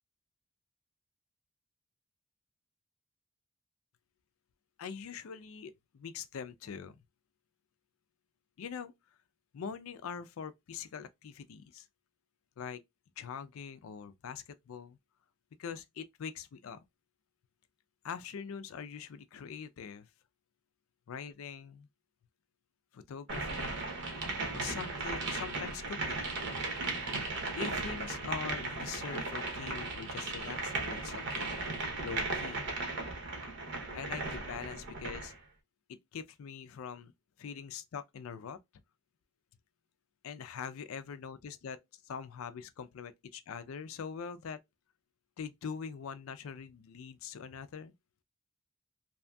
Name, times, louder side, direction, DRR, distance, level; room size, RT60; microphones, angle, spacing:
voice 1, 4.8-7.0 8.6-8.9 9.5-11.9 12.6-12.8 13.2-15.0 15.6-16.8 18.0-20.1 21.1-21.9 22.9-23.8 24.5-26.3 27.6-31.6 32.0-32.7 33.9-35.3 35.9-37.1 37.4-38.6 40.2-44.6 45.4-47.9, left 6 dB, 75° left, 0.4 m, -43 dB
sound 1, 23.3-35.4, right 3 dB, 55° right, 0.7 m, -36 dB
2.7 x 2.6 x 2.2 m
head